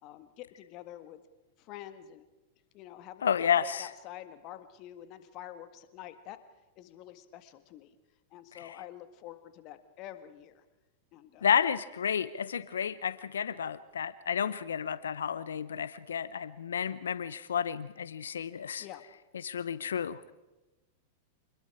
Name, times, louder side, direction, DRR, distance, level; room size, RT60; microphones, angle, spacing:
voice 1, 0.0-1.2 1.6-2.2 2.7-3.3 3.6-6.4 6.8-7.9 8.3-10.6 11.1-11.5 18.8-19.0, left 12 dB, 45° left, 10 dB, 1.7 m, -47 dB
voice 2, 3.2-3.9 8.5-8.8 11.4-18.9 19.4-20.3, left 8 dB, 75° left, 17 dB, 0.6 m, -31 dB
26.5 x 21.0 x 4.9 m, 1.1 s
hypercardioid pair, 100°, 0 cm